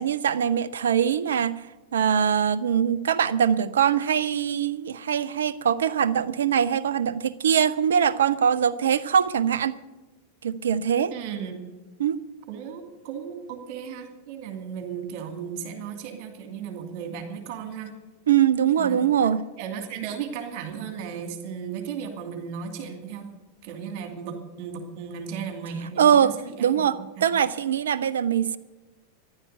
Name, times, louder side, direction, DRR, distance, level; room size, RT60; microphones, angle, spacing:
voice 1, 0.0-1.6 1.9-9.8 10.4-11.1 12.0-12.2 18.3-19.4 26.0-26.3 26.6-28.6, right 8 dB, 65° right, 15 dB, 0.5 m, -22 dB
voice 2, 11.1-11.6 12.5-17.9 18.8-23.3 23.6-27.2, right 7 dB, 45° right, 5 dB, 2.5 m, -36 dB
14.0 x 11.0 x 8.1 m, 1.1 s
figure-of-eight pair, 90°, 0 cm